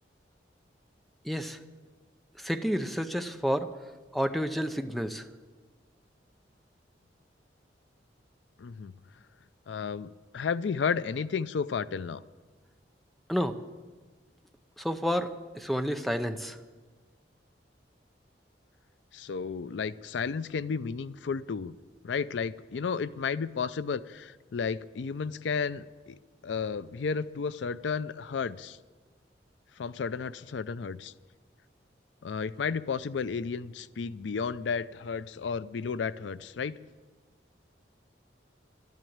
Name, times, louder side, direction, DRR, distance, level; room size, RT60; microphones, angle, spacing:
voice 1, 1.2-1.6 2.4-3.7 4.1-5.2 13.3-13.5 14.8-16.6, equal, ahead, 8 dB, 0.6 m, -30 dB
voice 2, 8.6-8.9 9.7-12.2 19.1-21.7 22.0-28.8 29.8-31.1 32.2-36.8, left 5 dB, 80° left, 16 dB, 0.4 m, -33 dB
12.5 x 11.0 x 8.6 m, 1.4 s
head